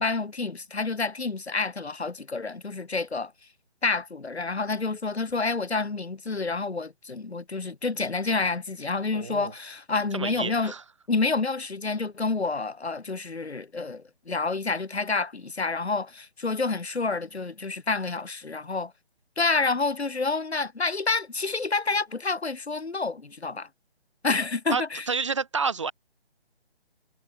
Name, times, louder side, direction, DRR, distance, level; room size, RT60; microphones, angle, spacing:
voice 1, 0.0-3.5 3.8-10.7 11.1-18.9 19.4-23.7 24.2-25.0, left 3 dB, 90° left, 5.1 m, -28 dB
voice 2, 9.1-9.5 10.1-10.8 24.7-25.9, right 5 dB, 30° right, 1.0 m, -29 dB
hypercardioid pair, 170°, 31 cm